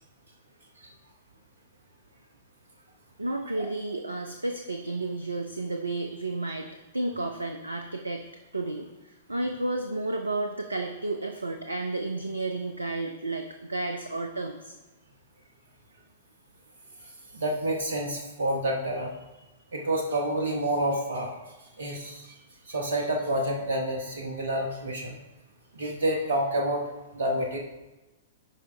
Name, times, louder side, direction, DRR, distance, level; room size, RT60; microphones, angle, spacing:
voice 1, 3.2-6.7 6.9-8.3 8.5-14.8, right 2 dB, 85° right, 5 dB, 0.5 m, -32 dB
voice 2, 17.3-19.1 19.7-21.4 21.8-22.3 22.7-25.2 25.7-26.8 27.1-27.6, right 1 dB, 65° right, 1 dB, 1.2 m, -28 dB
11.0 x 4.9 x 3.3 m, 1.1 s
figure-of-eight pair, 105°, 0 cm